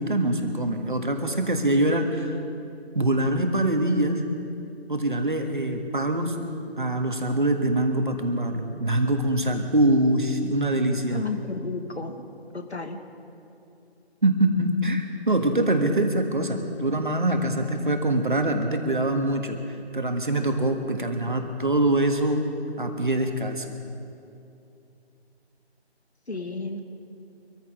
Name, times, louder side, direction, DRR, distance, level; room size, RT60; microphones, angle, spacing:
voice 1, 0.0-2.3 2.9-4.2 4.9-6.3 6.8-11.2 14.2-22.4 22.8-23.7, right 1 dB, 50° right, 5 dB, 1.6 m, -24 dB
voice 2, 11.1-12.2 12.5-13.0 26.3-26.8, left 3 dB, 85° left, 6 dB, 1.8 m, -32 dB
24.5 x 14.0 x 3.7 m, 2.7 s
figure-of-eight pair, 170°, 32 cm